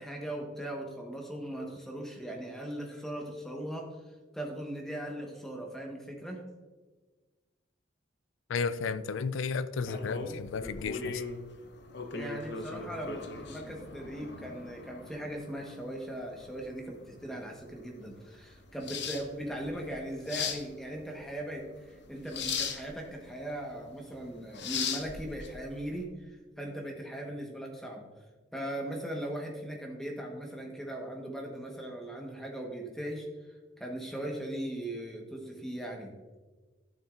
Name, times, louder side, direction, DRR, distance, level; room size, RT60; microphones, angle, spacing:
voice 1, 0.0-6.4 12.1-28.1 28.5-36.1, right 1 dB, ahead, 0 dB, 1.1 m, -39 dB
voice 2, 8.5-11.2, left 5 dB, 85° left, 14 dB, 0.4 m, -33 dB
sound 1, 9.8-26.0, left 5 dB, 60° left, 0.8 m, -39 dB
11.5 x 6.9 x 2.4 m, 1.3 s
head